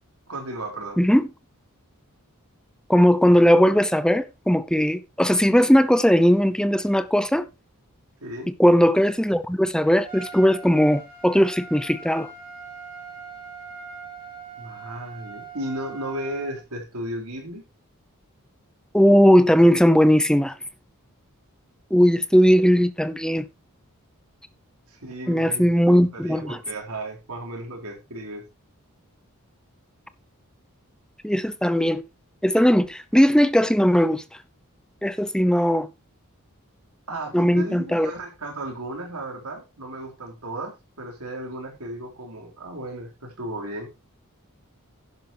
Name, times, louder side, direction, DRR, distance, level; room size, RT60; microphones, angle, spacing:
voice 1, 0.3-1.0 8.2-8.5 14.6-17.6 24.9-28.4 37.1-43.9, right 1 dB, 85° right, 3.9 m, -35 dB
voice 2, 1.0-1.3 2.9-7.5 8.6-12.3 18.9-20.5 21.9-23.5 25.3-26.6 31.2-32.0 32.4-34.2 35.0-35.9 37.3-38.1, equal, 5° left, 0.7 m, -18 dB
Trumpet, 10.0-16.6, right 4 dB, 40° right, 4.8 m, -41 dB
11.0 x 10.5 x 3.1 m
head